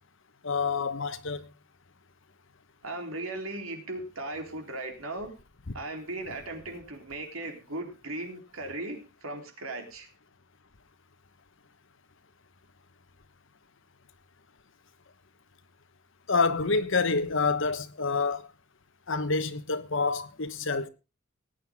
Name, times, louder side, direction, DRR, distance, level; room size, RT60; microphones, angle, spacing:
voice 1, 0.4-1.4 16.3-18.4 19.1-20.9, left 4 dB, 65° left, 1.2 m, -27 dB
voice 2, 2.8-5.3 5.7-10.1, right 2 dB, 80° right, 3.6 m, -37 dB
19.5 x 9.3 x 3.6 m
head